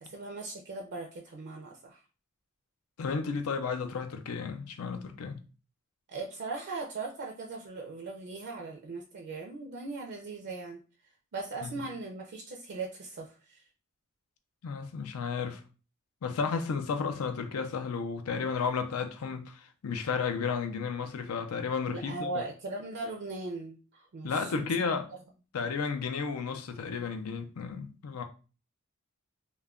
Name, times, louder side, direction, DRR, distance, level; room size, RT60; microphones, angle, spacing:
voice 1, 0.0-2.0 6.1-10.8 11.3-13.6 21.9-24.7, right 3 dB, 50° right, 0.4 m, -39 dB
voice 2, 3.0-5.4 11.6-11.7 14.6-15.6 16.2-22.3 24.2-25.1 25.5-28.2, left 5 dB, 90° left, 0.5 m, -33 dB
2.2 x 2.2 x 3.5 m
head